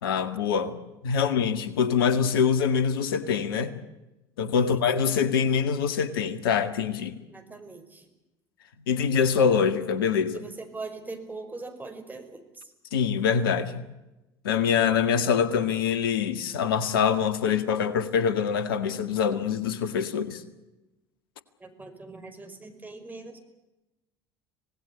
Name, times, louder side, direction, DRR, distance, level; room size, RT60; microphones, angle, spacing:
voice 1, 0.0-0.8 1.0-3.7 4.4-7.2 8.9-10.3 12.9-13.8 14.4-20.4, left 7 dB, 70° left, 1.9 m, -24 dB
voice 2, 7.3-8.1 10.3-12.7 21.6-23.4, right 3 dB, 15° right, 5.2 m, -41 dB
26.5 x 19.0 x 8.3 m
figure-of-eight pair, 65°, 12 cm